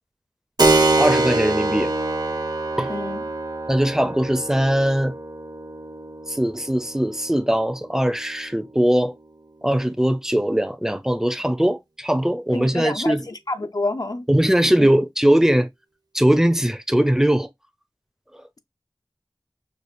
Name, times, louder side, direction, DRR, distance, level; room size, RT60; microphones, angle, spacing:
Keyboard (musical), 0.6-8.8, right 2 dB, 60° right, 0.9 m, -25 dB
voice 1, 1.0-1.9 2.8-2.9 3.7-5.1 6.3-9.1 9.6-13.3 14.3-15.7 16.1-17.5, right 1 dB, 5° right, 0.5 m, -20 dB
voice 2, 2.9-3.2 12.5-13.2 13.5-14.3 14.8-14.9, left 2 dB, 55° left, 0.5 m, -27 dB
4.9 x 2.4 x 2.6 m
wide cardioid pair, 45°, 8 cm